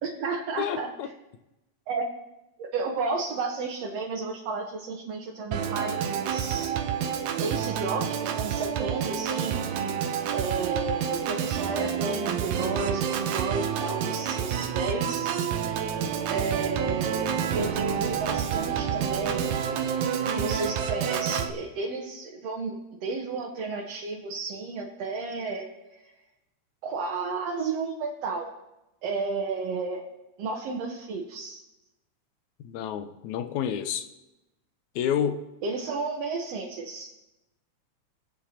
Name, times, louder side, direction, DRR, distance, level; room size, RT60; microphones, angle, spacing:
voice 1, 0.0-0.9 1.9-2.1 2.6-6.7 7.4-9.6 10.3-15.3 15.6-15.7 16.3-19.5 20.3-26.0 26.8-28.5 29.0-30.0 30.4-31.6 35.6-37.1, right 4 dB, 65° right, 2.1 m, -32 dB
voice 2, 0.6-1.1 32.6-34.1 35.0-35.4, left 8 dB, 85° left, 2.1 m, -29 dB
Organ, 5.5-21.5, right 8 dB, 80° right, 2.2 m, -28 dB
24.5 x 8.4 x 2.9 m
omnidirectional pair, 3.4 m